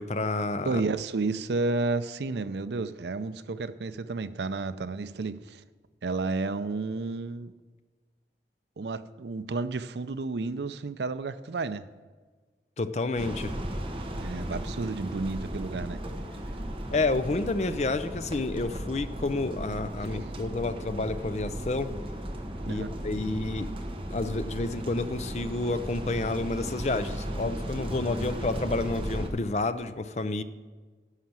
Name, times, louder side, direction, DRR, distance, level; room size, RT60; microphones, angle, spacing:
voice 1, 0.0-0.8 12.8-13.5 16.9-21.9 22.7-23.7 24.1-30.4, left 2 dB, 40° left, 11 dB, 0.5 m, -30 dB
voice 2, 0.6-5.6 6.0-7.5 8.8-11.9 14.2-16.0 22.7-22.9, right 3 dB, 75° right, 13 dB, 0.5 m, -31 dB
sound 1, 13.2-29.3, equal, 30° right, 1.2 m, -36 dB
11.5 x 5.8 x 7.5 m, 1.4 s
head